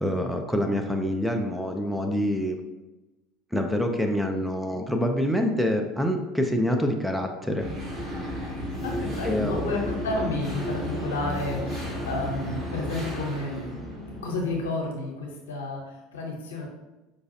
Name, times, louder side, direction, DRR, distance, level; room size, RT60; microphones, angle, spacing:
voice 1, 0.0-2.6 3.5-7.7 9.2-9.7, equal, ahead, 3 dB, 0.4 m, -26 dB
sound 1, 7.6-14.7, equal, 25° right, 1.2 m, -33 dB
voice 2, 8.8-16.7, left 2 dB, 75° left, -1 dB, 0.8 m, -31 dB
5.0 x 2.3 x 2.7 m, 1.1 s
figure-of-eight pair, 70°, 0 cm